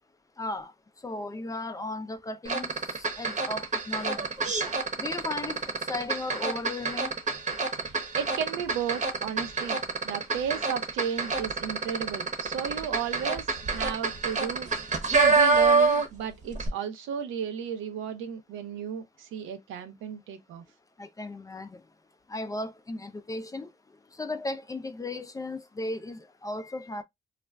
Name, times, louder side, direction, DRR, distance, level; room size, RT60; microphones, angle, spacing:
voice 1, 0.4-0.7 1.0-4.5 5.0-7.1 21.0-21.8 22.3-23.7 24.2-27.0, left 2 dB, 15° left, 0.3 m, -36 dB
sound 1, 2.5-16.2 16.5-16.7, right 4 dB, 35° right, 0.8 m, -27 dB
voice 2, 7.7-14.7 15.2-20.6, right 8 dB, 90° right, 0.6 m, -34 dB
2.4 x 2.1 x 3.2 m
cardioid pair, 90°, 20 cm